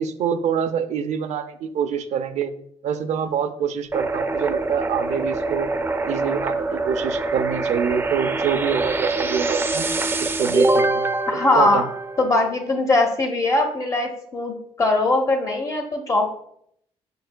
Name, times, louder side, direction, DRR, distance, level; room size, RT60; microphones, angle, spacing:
voice 1, 0.0-2.5 2.8-5.7 6.0-9.9 10.2-11.1 11.5-11.8, right 8 dB, 85° right, 10 dB, 0.5 m, -26 dB
sound 1, 3.9-12.6, right 2 dB, 20° right, 0.4 m, -24 dB
voice 2, 11.3-11.8 12.2-16.3, left 2 dB, 30° left, 2 dB, 0.8 m, -21 dB
6.6 x 6.6 x 2.2 m, 0.70 s
wide cardioid pair, 155°, 12 cm